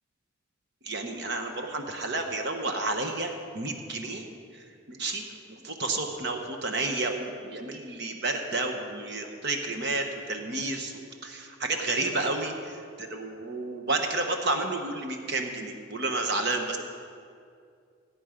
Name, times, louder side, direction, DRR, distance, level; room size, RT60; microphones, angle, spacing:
voice 1, 0.8-4.3 4.5-16.8, right 2 dB, 55° right, 4 dB, 1.0 m, -31 dB
17.0 x 8.6 x 5.1 m, 2.3 s
head